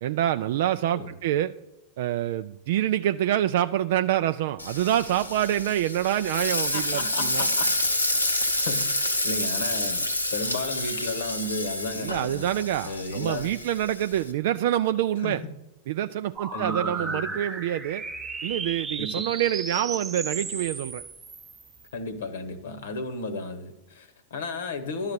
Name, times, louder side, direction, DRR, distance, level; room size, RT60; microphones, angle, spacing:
voice 1, 0.0-1.5 2.0-7.5 12.0-15.4 15.9-18.0 18.4-21.0, right 12 dB, 55° right, 10 dB, 0.3 m, -26 dB
Frying (food), 4.6-14.3, left 1 dB, 85° left, 1.1 m, -28 dB
voice 2, 6.7-7.7 8.1-12.4 12.8-13.5 15.2-15.4 16.5-17.4 19.0-19.2 21.9-25.1, left 2 dB, 60° left, 12 dB, 1.1 m, -34 dB
sound 1, 16.4-21.9, right 4 dB, 15° right, 1.1 m, -34 dB
11.5 x 5.6 x 7.9 m, 0.94 s
figure-of-eight pair, 90°, 0 cm